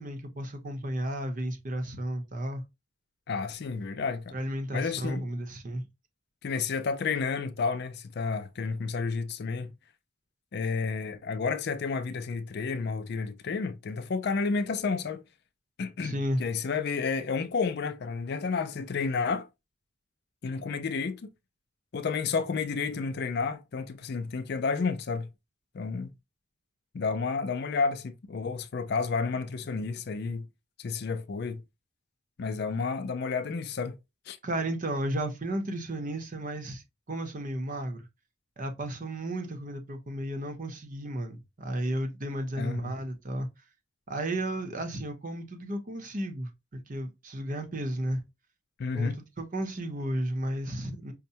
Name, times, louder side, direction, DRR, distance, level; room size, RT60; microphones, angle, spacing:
voice 1, 0.0-2.6 4.3-5.9 16.0-16.4 34.4-36.8 37.1-38.1 38.6-43.5 44.1-48.2 48.9-51.1, right 1 dB, 40° right, 0.8 m, -33 dB
voice 2, 3.3-4.4 4.7-5.3 6.4-9.7 10.5-15.2 15.8-19.5 20.4-21.3 21.9-25.3 25.7-26.1 26.9-30.5 30.8-31.6 32.4-34.0 34.3-34.4 42.6-43.0 48.8-49.2, left 4 dB, 55° left, 0.4 m, -31 dB
5.5 x 2.1 x 2.7 m
head